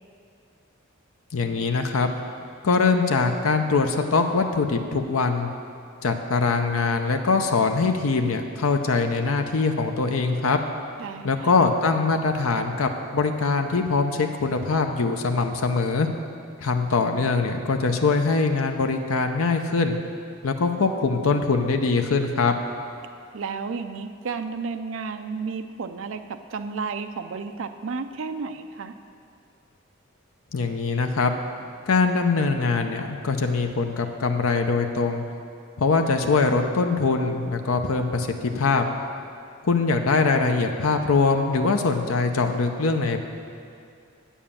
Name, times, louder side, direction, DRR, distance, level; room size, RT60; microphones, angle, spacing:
voice 1, 1.3-2.1 2.6-5.5 6.0-10.6 11.2-16.1 16.6-20.0 20.4-22.5 30.5-31.3 31.9-35.2 35.8-38.8 39.6-43.2, left 4 dB, 90° left, 5 dB, 0.6 m, -22 dB
voice 2, 11.0-11.5 23.3-28.9, right 5 dB, 70° right, 8 dB, 0.5 m, -32 dB
8.6 x 7.2 x 7.2 m, 2.4 s
head